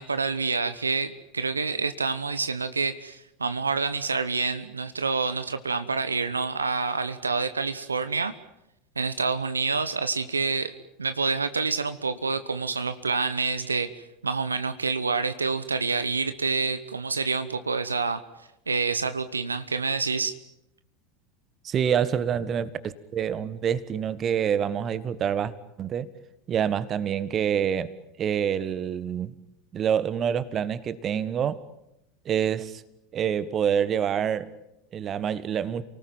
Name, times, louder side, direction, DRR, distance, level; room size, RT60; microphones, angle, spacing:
voice 1, 0.0-8.3 9.0-10.7 11.0-13.9 14.2-18.2 18.7-20.3, right 4 dB, 85° right, 12 dB, 1.0 m, -27 dB
voice 2, 21.6-25.5 25.8-26.1 26.5-27.9 28.2-29.3 29.7-31.6 32.2-32.8 33.1-34.5 34.9-35.8, right 8 dB, 35° right, 16 dB, 1.5 m, -26 dB
28.5 x 19.0 x 9.2 m, 0.85 s
figure-of-eight pair, 80°, 0 cm